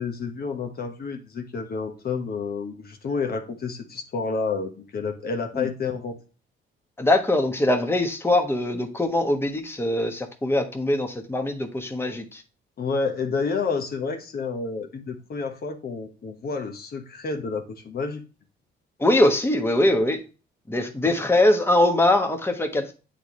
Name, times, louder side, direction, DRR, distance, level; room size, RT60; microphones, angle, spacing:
voice 1, 0.0-6.2 12.8-18.2, left 4 dB, 50° left, 5 dB, 1.2 m, -29 dB
voice 2, 7.0-12.4 19.0-20.2 20.7-22.9, left 1 dB, 10° left, 5 dB, 1.2 m, -22 dB
8.1 x 4.0 x 3.0 m, 0.33 s
cardioid pair, 90°, 20 cm